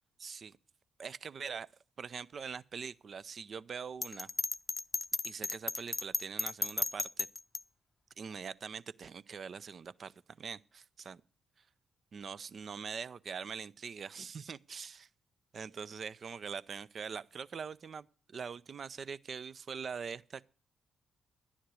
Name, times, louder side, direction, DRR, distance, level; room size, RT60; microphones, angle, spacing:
voice 1, 0.2-0.6 1.0-1.7 2.0-4.3 5.2-7.3 8.2-11.2 12.1-15.1 15.5-20.4, right 6 dB, 55° right, 0.5 m, -43 dB
Bell, 4.0-7.6, left 3 dB, 35° left, 0.6 m, -34 dB
11.5 x 10.0 x 6.2 m
hypercardioid pair, 40°, 0 cm